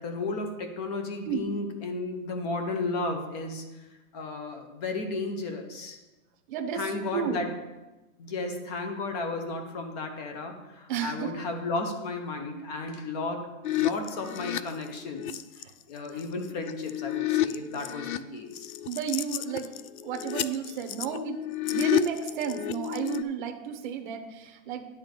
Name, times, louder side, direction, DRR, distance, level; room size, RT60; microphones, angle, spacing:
voice 1, 0.0-3.6 4.1-6.0 6.7-7.5 8.2-13.4 13.7-15.4 15.9-18.7, left 3 dB, 30° left, 5 dB, 0.9 m, -33 dB
voice 2, 6.5-7.4 10.9-11.3 16.1-16.2 18.9-19.7 20.0-24.9, right 7 dB, 35° right, 4 dB, 0.8 m, -32 dB
sound 1, 13.6-15.6 16.2-18.2 18.5-23.2, left 14 dB, 80° left, 0.6 m, -30 dB
10.0 x 4.0 x 6.7 m, 1.1 s
hypercardioid pair, 160°, 42 cm